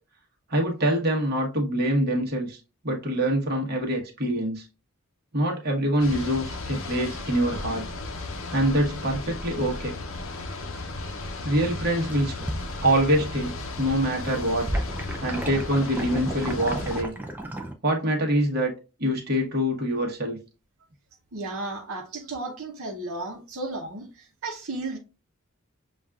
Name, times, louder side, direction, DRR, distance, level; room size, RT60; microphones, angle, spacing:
voice 1, 0.5-2.6 2.8-4.7 5.3-7.9 8.5-9.9 11.4-12.3 12.8-14.7 15.2-17.1 17.8-18.7 19.0-20.4, right 1 dB, 45° right, 1.1 m, -25 dB
sound 1, 6.0-17.0, left 2 dB, 65° left, 0.6 m, -35 dB
sound 2, 11.8-13.4 13.7-17.7, right 1 dB, 10° right, 0.4 m, -33 dB
voice 2, 21.3-25.0, right 2 dB, 70° right, 0.8 m, -34 dB
6.9 x 2.4 x 2.3 m
head